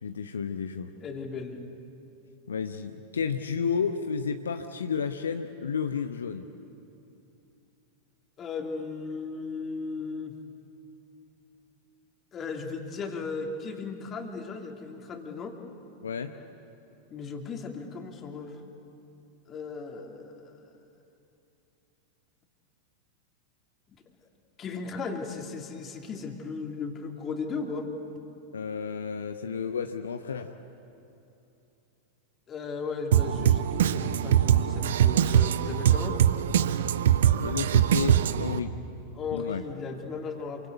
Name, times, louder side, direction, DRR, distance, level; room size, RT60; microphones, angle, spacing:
voice 1, 0.0-0.9 2.5-6.4 16.0-16.3 28.5-30.5 37.4-38.7 39.3-39.6, left 6 dB, 70° left, 7 dB, 0.9 m, -31 dB
voice 2, 1.0-1.6 8.4-10.4 12.3-15.6 17.1-18.6 19.5-20.7 24.6-27.9 32.5-36.2 39.1-40.7, left 4 dB, 25° left, 2 dB, 2.9 m, -36 dB
Drum kit, 33.1-38.6, right 10 dB, 60° right, 0.8 m, -23 dB
27.5 x 24.5 x 8.2 m, 2.9 s
figure-of-eight pair, 90°, 0 cm